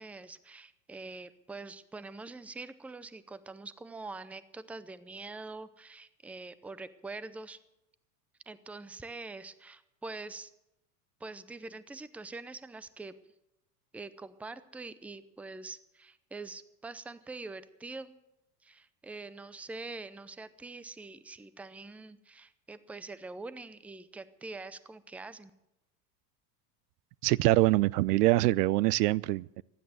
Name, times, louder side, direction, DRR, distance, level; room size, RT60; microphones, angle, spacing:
voice 1, 0.0-7.6 8.5-10.5 11.2-13.2 13.9-18.1 18.6-25.5, right 3 dB, 5° right, 0.5 m, -44 dB
voice 2, 27.2-29.6, right 18 dB, 75° right, 0.6 m, -24 dB
15.5 x 10.5 x 7.9 m
hypercardioid pair, 105°, 48 cm